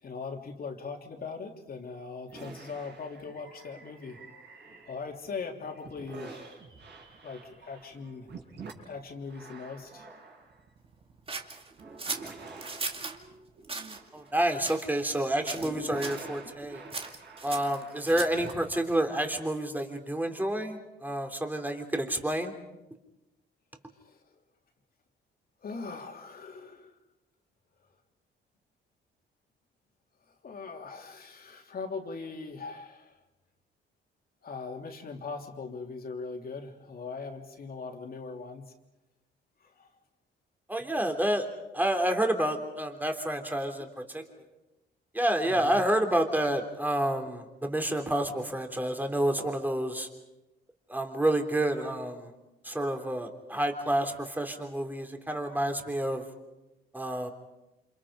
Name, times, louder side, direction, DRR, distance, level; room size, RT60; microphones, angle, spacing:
voice 1, 0.0-4.2 4.9-6.5 7.2-8.3 8.8-10.1 24.0-24.2 25.6-27.0 30.4-33.2 34.4-38.7 39.6-39.9 45.4-45.8, left 4 dB, 50° left, 3 dB, 3.3 m, -40 dB
sound 1, 2.3-5.3 5.7-18.8, right 4 dB, 65° right, 6.1 m, -48 dB
sound 2, 11.3-13.2 13.6-14.0 14.6-15.2 15.5-15.8 16.0-16.3 16.9-18.5, right 3 dB, 30° right, 2.3 m, -37 dB
voice 2, 14.1-16.8 17.4-22.5 40.7-41.4 41.7-44.2 45.1-50.1 50.9-52.3 52.6-56.2 56.9-57.3, right 1 dB, 10° right, 5 dB, 3.4 m, -29 dB
29.0 x 27.0 x 5.1 m, 0.98 s
cardioid pair, 90°, 20 cm